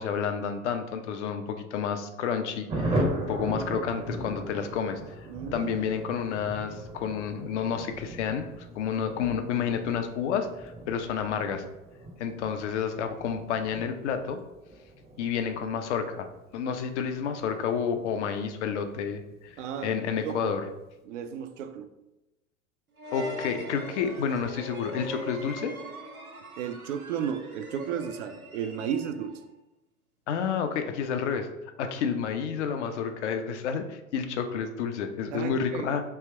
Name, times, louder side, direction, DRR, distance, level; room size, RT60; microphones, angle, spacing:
voice 1, 0.0-5.0 5.5-11.6 12.2-14.4 15.2-16.3 16.5-20.6 23.1-25.7 30.3-31.5 31.8-36.0, left 7 dB, 55° left, 7 dB, 0.6 m, -30 dB
Thunder, 2.7-18.8 19.1-19.2 19.5-19.6 19.9-20.3, right 1 dB, 15° right, 0.6 m, -37 dB
voice 2, 5.3-5.7 19.6-20.5 21.0-21.9 26.6-29.4 35.3-36.0, right 8 dB, 60° right, 9 dB, 0.5 m, -34 dB
sound 1, 23.0-29.4, right 1 dB, 85° right, 0.8 m, -41 dB
3.4 x 2.8 x 4.3 m, 0.96 s
figure-of-eight pair, 85°, 42 cm